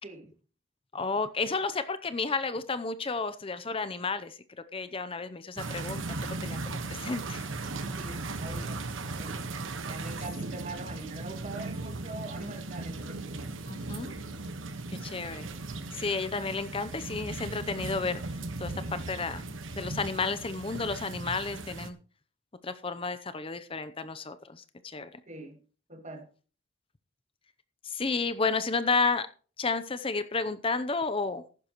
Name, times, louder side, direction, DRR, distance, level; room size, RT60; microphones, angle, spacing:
voice 1, 0.9-4.4 4.7-6.2 6.4-7.5 13.7-14.1 14.9-15.5 15.9-18.2 18.6-18.7 19.1-19.4 19.8-22.0 22.6-25.1 27.8-29.3 29.6-31.4, left 4 dB, 25° left, 0.6 m, -31 dB
sound 1, 5.6-21.9, right 3 dB, 70° right, 1.3 m, -37 dB
voice 2, 7.8-9.4 9.8-13.6 25.3-25.6 25.9-26.3, right 2 dB, 35° right, 2.2 m, -43 dB
15.0 x 11.5 x 3.0 m
head